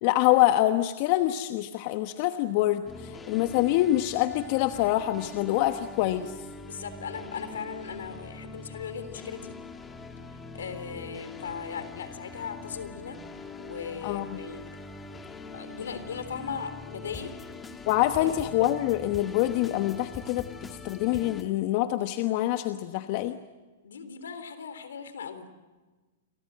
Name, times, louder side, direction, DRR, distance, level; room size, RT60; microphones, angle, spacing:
voice 1, 0.0-6.3 14.0-14.4 17.9-23.4, left 14 dB, 50° left, 8 dB, 1.2 m, -25 dB
sound 1, 2.9-21.4, left 3 dB, 15° left, 2.2 m, -43 dB
voice 2, 6.6-9.5 10.3-13.2 13.6-14.6 15.5-17.3 18.2-18.3 23.8-25.5, left 6 dB, 80° left, 11 dB, 3.6 m, -38 dB
28.5 x 24.0 x 7.6 m, 1.2 s
hypercardioid pair, 120°, 0 cm